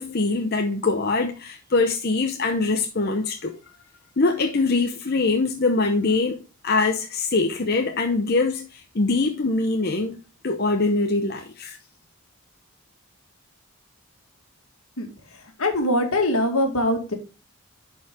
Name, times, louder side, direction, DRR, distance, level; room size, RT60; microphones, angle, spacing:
voice 1, 0.0-3.6 4.2-10.2 10.4-11.8, left 3 dB, 45° left, 0.8 m, -23 dB
voice 2, 15.6-17.2, left 1 dB, 70° left, 2.0 m, -22 dB
11.0 x 4.6 x 3.6 m
head